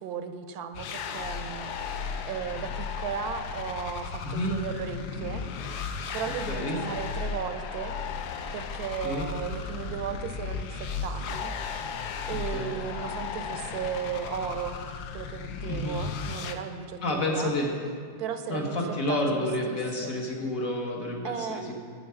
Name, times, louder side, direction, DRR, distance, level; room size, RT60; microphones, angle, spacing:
voice 1, 0.0-5.4 6.1-8.0 8.5-11.5 12.3-14.8 15.1-17.6 18.2-18.8 19.1-20.2 21.2-21.7, right 7 dB, 80° right, 9 dB, 1.1 m, -36 dB
sound 1, 0.7-16.5, left 5 dB, 85° left, 1.2 m, -35 dB
voice 2, 6.5-6.8 9.0-9.3 12.5-12.7 15.7-16.0 17.0-17.7 18.5-21.7, left 1 dB, 60° left, -1 dB, 1.7 m, -29 dB
8.7 x 7.5 x 5.7 m, 2.3 s
omnidirectional pair, 1.7 m